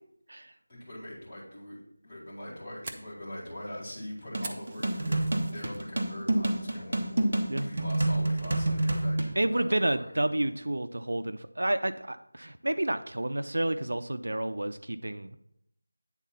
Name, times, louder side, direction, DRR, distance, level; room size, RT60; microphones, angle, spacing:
voice 1, 0.7-5.2 5.5-7.1 7.5-10.5, left 1 dB, 20° left, -8 dB, 2.0 m, -43 dB
Fire, 2.3-5.8 6.2-6.6 7.0-7.1 7.6-8.0, right 3 dB, 20° right, 0.4 m, -44 dB
sound 1, 4.3-9.3, right 1 dB, 40° right, 1.0 m, -28 dB
voice 2, 9.4-15.5, right 1 dB, 70° right, 11 dB, 0.5 m, -30 dB
9.0 x 3.9 x 5.7 m, 0.76 s
figure-of-eight pair, 175°, 0 cm